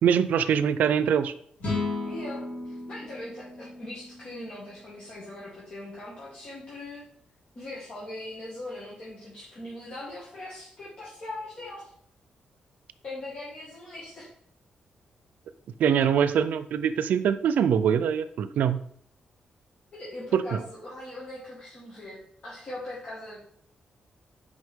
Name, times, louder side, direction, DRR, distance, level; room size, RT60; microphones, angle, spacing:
voice 1, 0.0-1.3 15.8-18.8 20.3-20.6, right 8 dB, 85° right, 12 dB, 0.4 m, -23 dB
sound 1, 1.6-4.9, left 3 dB, 70° left, 2.7 m, -35 dB
voice 2, 2.1-7.0 7.6-11.9 13.0-14.3 19.9-23.4, left 1 dB, 45° left, -6 dB, 1.9 m, -40 dB
6.3 x 5.2 x 3.7 m, 0.65 s
wide cardioid pair, 130°, 3 cm